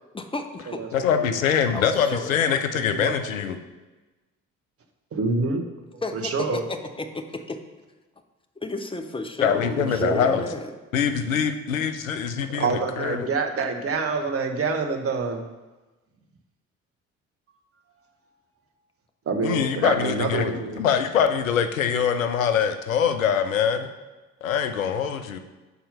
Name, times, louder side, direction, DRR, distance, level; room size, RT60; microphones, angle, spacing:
voice 1, 0.1-0.9 1.7-2.5 6.0-7.6 8.6-10.7, left 2 dB, 15° left, 5 dB, 0.8 m, -33 dB
voice 2, 0.9-3.6 9.4-10.4 10.9-13.3 19.4-23.9 24.4-25.4, left 7 dB, 85° left, 8 dB, 0.5 m, -23 dB
voice 3, 2.7-3.1 5.1-5.6 5.9-6.6 9.8-10.3 12.5-15.4 19.3-20.8, right 4 dB, 35° right, 4 dB, 1.0 m, -27 dB
6.9 x 4.3 x 5.3 m, 1.2 s
figure-of-eight pair, 45°, 39 cm